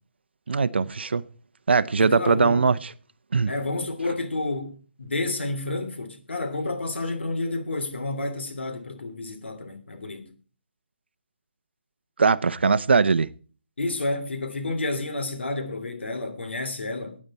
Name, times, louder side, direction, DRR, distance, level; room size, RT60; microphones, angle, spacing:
voice 1, 0.5-1.2 1.7-2.8 3.3-3.5 12.2-13.3, right 5 dB, 75° right, 0.8 m, -20 dB
voice 2, 2.0-2.7 3.5-10.3 13.8-17.2, left 2 dB, 85° left, 3.0 m, -30 dB
16.0 x 9.5 x 4.3 m
hypercardioid pair, 170°, 6 cm